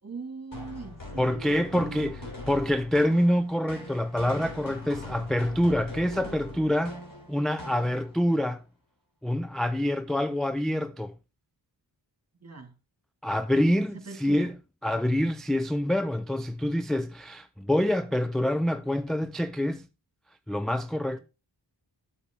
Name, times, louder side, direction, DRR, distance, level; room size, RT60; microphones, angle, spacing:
voice 1, 0.0-2.5 12.4-12.7 13.8-14.5 21.1-21.2, right 3 dB, 35° right, 2.4 m, -41 dB
sound 1, 0.5-8.3, left 2 dB, 45° left, 3.5 m, -42 dB
voice 2, 1.2-2.2 2.5-7.0 7.3-8.6 9.2-11.1 13.2-14.5 14.8-19.9 20.5-21.2, left 1 dB, ahead, 0.4 m, -26 dB
8.1 x 7.3 x 3.7 m
cardioid pair, 50°, 44 cm